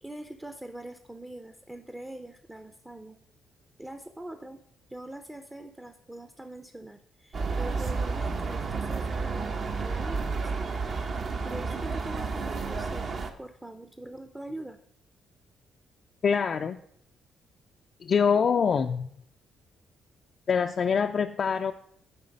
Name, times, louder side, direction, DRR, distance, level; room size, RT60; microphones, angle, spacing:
voice 1, 0.0-3.2 3.8-4.6 4.9-11.0 11.4-14.8, right 1 dB, 10° right, 7 dB, 0.5 m, -43 dB
sound 1, 7.3-13.3, right 4 dB, 50° right, 0.8 m, -31 dB
voice 2, 16.2-16.8 18.0-19.1 20.5-21.7, left 6 dB, 50° left, 6 dB, 0.3 m, -24 dB
9.6 x 4.0 x 5.2 m, 0.69 s
cardioid pair, 90°, 0 cm